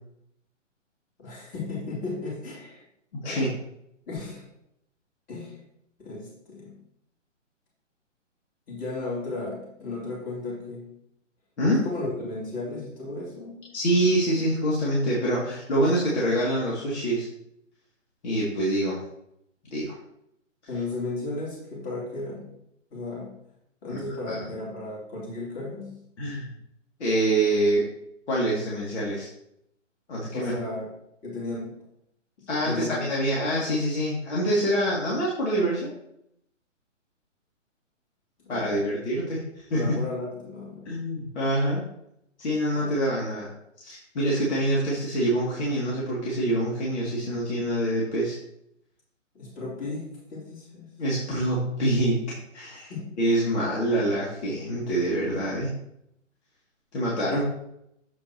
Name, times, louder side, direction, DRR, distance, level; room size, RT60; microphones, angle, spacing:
voice 1, 1.2-2.8 3.2-3.6 4.1-4.5 5.3-5.6 6.0-6.8 8.7-10.9 11.7-13.7 20.7-22.5 22.9-23.3 23.8-26.0 30.3-30.9 31.2-31.7 32.4-33.0 38.4-38.8 39.7-40.9 42.7-42.9 49.3-50.9 52.9-53.1 57.3-57.4, left 2 dB, 20° left, -4 dB, 3.0 m, -35 dB
voice 2, 13.7-17.3 18.2-19.0 19.7-19.9 23.9-24.0 24.3-24.4 26.2-26.5 27.0-27.9 28.3-29.3 30.1-30.5 32.5-35.9 38.5-39.9 40.8-41.8 42.4-43.5 43.8-48.4 51.0-52.9 53.2-55.7 56.9-57.4, right 1 dB, 60° left, -6 dB, 2.6 m, -25 dB
8.3 x 7.8 x 2.9 m, 0.78 s
hypercardioid pair, 140°, 38 cm